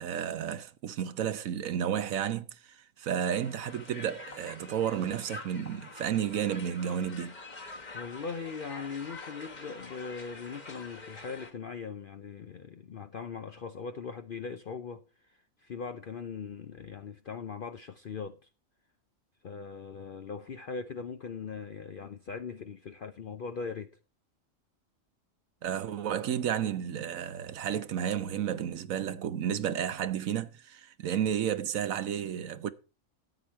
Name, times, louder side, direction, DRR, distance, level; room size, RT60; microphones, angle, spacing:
voice 1, 0.0-7.3 25.6-32.7, right 9 dB, 80° right, 1.2 m, -32 dB
Crowd, 3.2-11.5, left 3 dB, 35° left, 1.9 m, -46 dB
voice 2, 7.9-18.4 19.4-23.9, left 5 dB, 50° left, 0.7 m, -40 dB
13.5 x 8.8 x 4.4 m
omnidirectional pair, 1.4 m